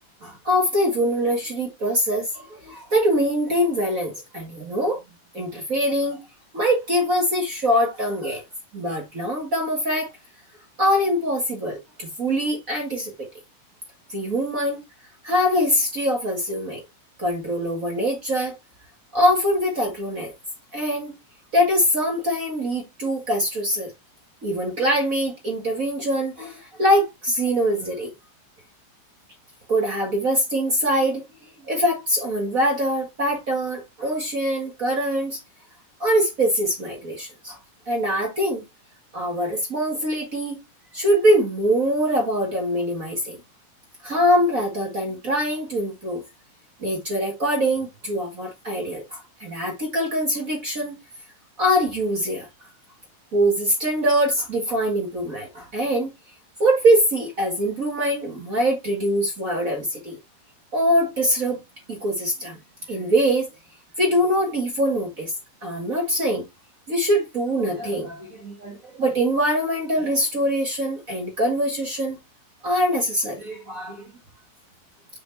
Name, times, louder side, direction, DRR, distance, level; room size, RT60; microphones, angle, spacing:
voice 1, 0.2-5.0 5.3-6.2 6.5-8.4 8.7-10.1 10.8-13.3 14.1-14.8 15.2-16.8 17.2-18.6 19.1-20.3 20.7-21.2 21.5-23.9 24.4-28.1 29.7-31.2 31.7-35.4 36.0-37.6 37.9-38.6 39.1-40.6 40.9-43.4 44.0-46.2 46.8-51.0 51.6-52.5 53.3-56.1 56.6-60.2 60.7-61.6 62.0-62.6 62.9-63.5 64.0-65.3 65.6-66.4 66.9-72.2 72.6-74.0, equal, 35° right, 1.3 m, -23 dB
6.4 x 6.3 x 2.6 m
omnidirectional pair, 3.9 m